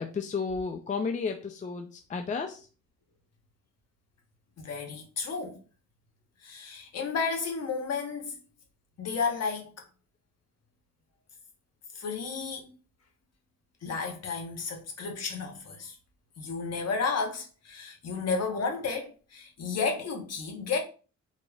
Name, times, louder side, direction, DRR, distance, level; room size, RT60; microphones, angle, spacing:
voice 1, 0.0-2.6, left 5 dB, 25° left, 0.4 m, -32 dB
voice 2, 4.6-5.6 6.4-8.4 9.0-9.8 11.9-12.7 13.8-16.0 16.4-20.8, left 5 dB, 55° left, 1.2 m, -32 dB
3.9 x 3.1 x 2.4 m
cardioid pair, 90°, 30 cm